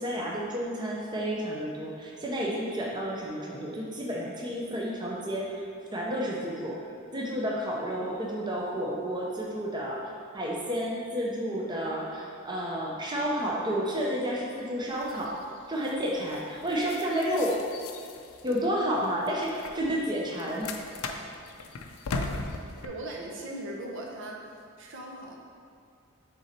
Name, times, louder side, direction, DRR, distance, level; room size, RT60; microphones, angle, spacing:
voice 1, 0.0-5.6 5.9-6.8 7.1-15.4 15.7-17.5 18.4-20.7, equal, 20° right, -3 dB, 0.6 m, -31 dB
sound 1, 14.8-22.9, left 3 dB, 70° left, 0.5 m, -40 dB
voice 2, 22.8-24.4 24.8-25.4, right 1 dB, 60° right, 0 dB, 0.8 m, -38 dB
6.2 x 3.8 x 4.3 m, 2.4 s
head